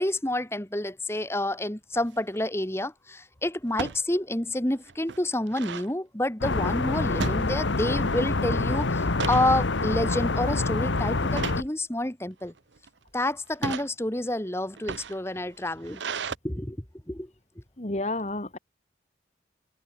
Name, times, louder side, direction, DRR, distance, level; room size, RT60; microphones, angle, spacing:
voice 1, 0.0-12.5 13.1-16.0 16.4-16.8 17.1-17.3, left 1 dB, 15° left, 1.5 m, -29 dB
sound 1, 1.9-2.3 3.7-4.0 4.5-4.6 4.9-5.9 7.2-8.0 8.3-8.6 9.0-9.5 10.1-10.4 11.3-11.7 12.4-12.9 13.5-13.9 14.7-16.3, right 5 dB, 75° right, 0.8 m, -35 dB
sound 2, 6.4-11.6, left 3 dB, 80° left, 1.2 m, -26 dB
voice 2, 17.8-18.6, left 2 dB, 35° left, 1.9 m, -30 dB
head